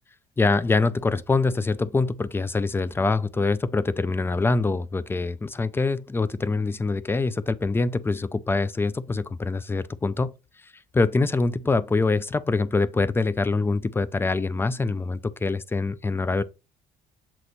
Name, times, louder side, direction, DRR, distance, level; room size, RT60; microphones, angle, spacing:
voice 1, 0.4-10.3 10.9-16.4, left 3 dB, 15° left, 0.4 m, -24 dB
7.9 x 2.9 x 4.1 m
cardioid pair, 110°, 17 cm